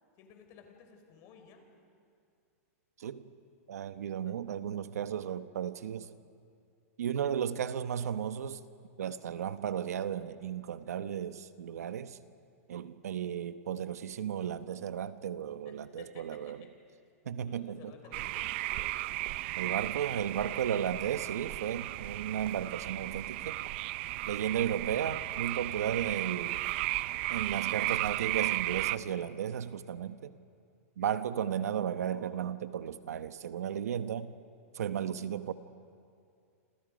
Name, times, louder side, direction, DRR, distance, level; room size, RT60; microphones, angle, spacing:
voice 1, 0.2-1.7 12.7-12.9 15.6-16.7 17.4-18.9 24.4-24.7, left 6 dB, 40° left, 4.4 m, -55 dB
voice 2, 3.7-6.1 7.0-8.6 9.0-12.2 12.7-16.6 17.3-17.8 19.6-23.6 24.3-26.6 27.3-30.3 31.0-34.3 34.7-35.5, right 9 dB, 85° right, 1.1 m, -34 dB
sound 1, 18.1-29.0, right 18 dB, 45° right, 0.6 m, -35 dB
27.5 x 27.5 x 5.2 m
hypercardioid pair, 150°, 8 cm